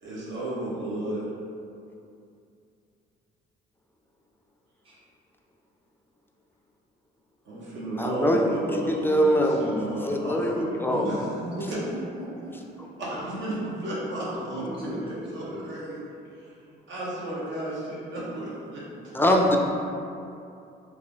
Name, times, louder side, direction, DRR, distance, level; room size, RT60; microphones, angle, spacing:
voice 1, 0.0-1.2 7.4-11.2 11.6-11.8 13.0-16.0 16.4-19.2, right 1 dB, 70° right, -6 dB, 1.1 m, -33 dB
voice 2, 8.0-8.4 8.7-9.7 10.1-11.1 19.1-19.6, equal, 10° left, 1 dB, 0.3 m, -23 dB
voice 3, 10.9-12.5 14.3-15.6, right 1 dB, 25° right, -8 dB, 1.0 m, -36 dB
3.3 x 2.3 x 3.7 m, 2.6 s
cardioid pair, 90°, 20 cm